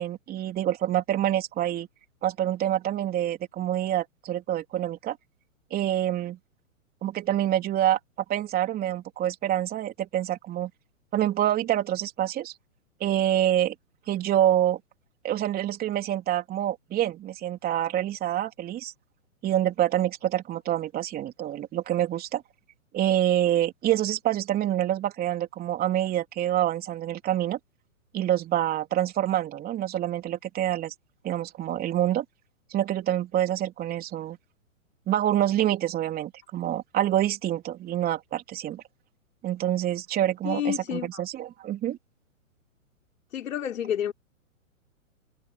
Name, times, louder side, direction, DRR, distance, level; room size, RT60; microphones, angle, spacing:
voice 1, 0.0-1.9 2.2-5.2 5.7-6.4 7.0-8.0 8.3-10.7 11.1-12.5 13.0-13.7 14.1-14.8 15.2-18.9 19.4-22.4 22.9-27.6 28.1-30.9 31.2-32.2 32.7-34.4 35.1-38.8 39.4-42.0, right 12 dB, 20° right, 3.4 m, -26 dB
voice 2, 40.4-41.2 43.3-44.1, left 10 dB, 70° left, 5.0 m, -29 dB
hypercardioid pair, 135°, 41 cm